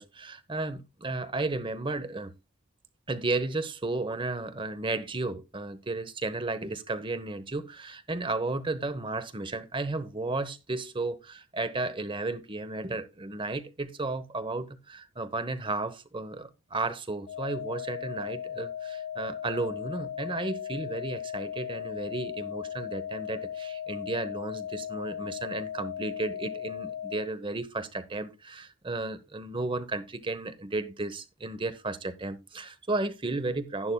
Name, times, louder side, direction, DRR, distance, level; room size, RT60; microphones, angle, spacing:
voice 1, 0.0-2.3 3.1-33.9, right 2 dB, 25° right, 0.9 m, -33 dB
sound 1, 17.3-27.3, left 9 dB, 35° left, 0.7 m, -37 dB
11.5 x 11.0 x 2.3 m
head